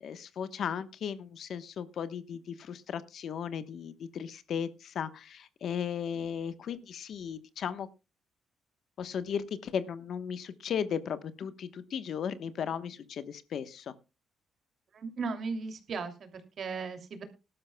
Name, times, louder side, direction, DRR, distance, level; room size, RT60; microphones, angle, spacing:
voice 1, 0.0-7.9 9.0-14.0, left 7 dB, 65° left, 13 dB, 1.1 m, -36 dB
voice 2, 14.9-17.2, right 4 dB, 55° right, 7 dB, 2.7 m, -37 dB
19.5 x 12.0 x 2.2 m, 0.27 s
cardioid pair, 90°, 0 cm